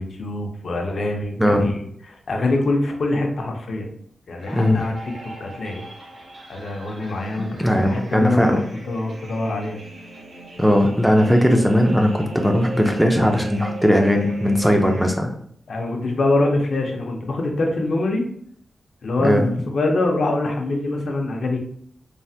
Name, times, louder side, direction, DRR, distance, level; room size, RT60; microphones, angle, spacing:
voice 1, 0.0-1.8 2.1-3.9 4.3-4.9 5.4-5.8 6.5-7.5 7.8-8.6 8.9-9.8 15.7-18.2 19.0-21.6, left 2 dB, 60° left, 2 dB, 0.5 m, -24 dB
voice 2, 1.4-1.7 4.5-4.8 7.4-8.6 10.6-15.3 19.2-19.5, equal, 5° right, 3 dB, 0.3 m, -18 dB
sound 1, 4.4-15.1, right 2 dB, 80° right, 0.9 m, -38 dB
3.1 x 2.1 x 2.7 m, 0.63 s
wide cardioid pair, 145°, 0 cm